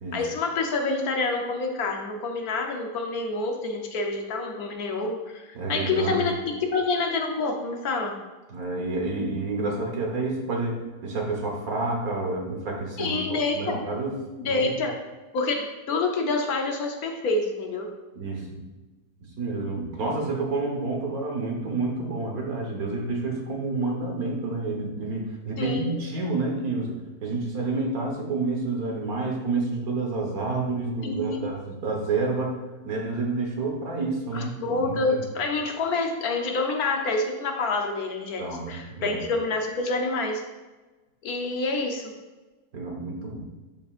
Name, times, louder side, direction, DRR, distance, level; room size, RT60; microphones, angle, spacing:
voice 1, 0.1-6.3 6.7-8.2 13.0-13.8 14.4-15.0 15.3-17.9 25.6-26.0 31.0-31.5 34.3-40.4 41.2-42.1, left 3 dB, 70° left, 2 dB, 1.3 m, -27 dB
voice 2, 5.5-6.3 8.5-14.2 14.4-14.8 18.1-18.5 19.4-32.5 32.8-35.2 38.4-39.2 42.7-43.4, right 3 dB, 65° right, 0 dB, 1.7 m, -29 dB
11.0 x 5.2 x 2.5 m, 1.2 s
omnidirectional pair, 1.7 m